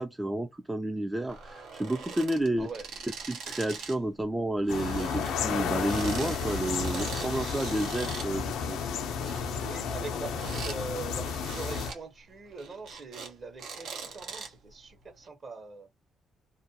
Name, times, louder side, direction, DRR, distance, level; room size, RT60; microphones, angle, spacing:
voice 1, 0.0-2.7 3.3-8.8, right 1 dB, 15° right, 0.3 m, -31 dB
sound 1, 1.3-4.0 4.3-8.3 8.9-10.8 11.2-12.0 12.4-13.3 13.6-14.7 15.2-15.3, right 5 dB, 80° right, 0.8 m, -42 dB
voice 2, 2.6-2.9 9.6-15.9, right 3 dB, 45° right, 0.9 m, -42 dB
sound 2, 4.7-11.9, left 6 dB, 85° left, 0.5 m, -32 dB
2.4 x 2.2 x 2.7 m
cardioid pair, 90°, 0 cm